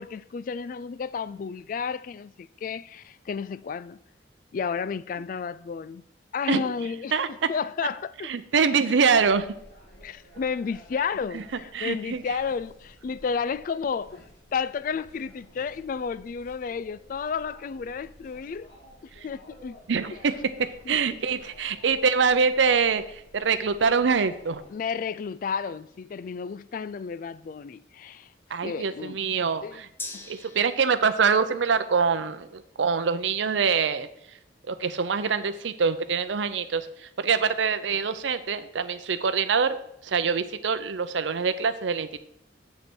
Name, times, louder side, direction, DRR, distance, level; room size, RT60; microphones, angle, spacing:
voice 1, 0.0-4.0 4.5-6.0 6.3-7.1 7.5-8.3 10.0-14.2 14.5-18.7 19.2-19.8 20.1-20.2 20.9-21.0 24.7-28.3 28.6-29.2 29.6-29.8 30.1-30.3, left 6 dB, 45° left, 0.3 m, -32 dB
voice 2, 7.1-7.5 8.2-9.5 11.3-11.4 11.7-12.2 19.9-24.6 28.5-29.9 30.3-34.1 34.7-42.2, right 5 dB, 80° right, 0.6 m, -25 dB
sound 1, 9.1-24.7, equal, 65° left, 3.0 m, -52 dB
Gong, 30.0-37.8 38.1-38.2, left 3 dB, 10° left, 0.8 m, -48 dB
7.4 x 5.2 x 6.1 m
head